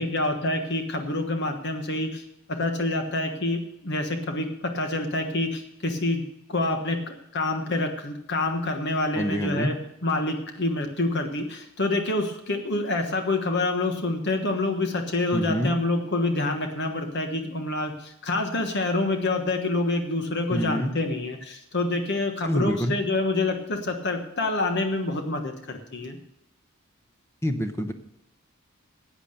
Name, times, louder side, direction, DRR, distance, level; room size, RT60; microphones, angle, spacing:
voice 1, 0.0-9.8 10.0-26.2, left 2 dB, 50° left, 5 dB, 1.3 m, -27 dB
voice 2, 9.2-9.7 15.3-15.7 20.5-20.9 22.4-23.0 27.4-27.9, equal, 10° left, 7 dB, 0.8 m, -26 dB
11.0 x 8.6 x 6.5 m, 0.81 s
head